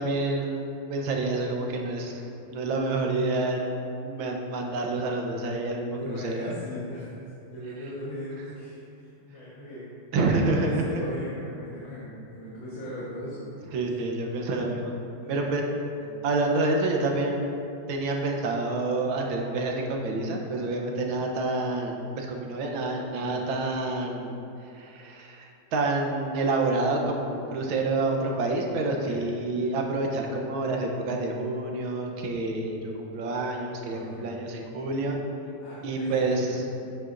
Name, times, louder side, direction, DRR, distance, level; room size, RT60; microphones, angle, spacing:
voice 1, 0.0-2.2 2.5-3.6 4.0-6.5 10.1-11.0 13.7-14.9 15.3-15.7 16.2-24.4 24.6-35.2 35.8-36.6, right 2 dB, 90° right, 1 dB, 1.7 m, -28 dB
voice 2, 5.9-7.1 7.5-9.9 10.5-13.7 15.2-16.2 20.8-21.2 23.2-23.5 28.9-29.2 33.9-34.3 35.6-36.6, left 1 dB, 75° left, -8 dB, 2.1 m, -39 dB
9.6 x 7.8 x 2.5 m, 2.8 s
omnidirectional pair, 2.1 m